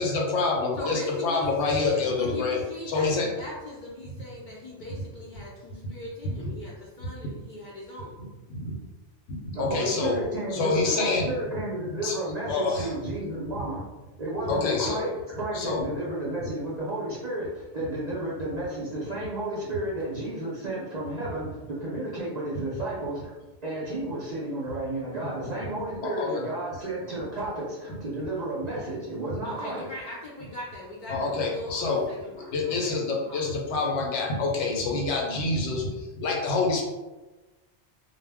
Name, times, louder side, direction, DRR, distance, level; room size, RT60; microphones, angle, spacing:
voice 1, 0.0-2.6 2.9-3.3 6.3-6.4 7.2-7.3 8.5-8.7 9.3-10.2 10.5-11.3 12.0-12.2 12.5-12.9 14.5-15.0 15.5-15.8 26.0-26.4 31.1-32.0 32.3-36.8, left 3 dB, 75° left, 0 dB, 0.9 m, -27 dB
voice 2, 0.8-8.2 29.4-33.5, left 1 dB, 60° left, -5 dB, 0.5 m, -40 dB
voice 3, 9.5-13.8 14.2-23.3 23.6-29.9, right 1 dB, 50° right, -7 dB, 0.5 m, -32 dB
2.1 x 2.1 x 3.4 m, 1.1 s
omnidirectional pair, 1.2 m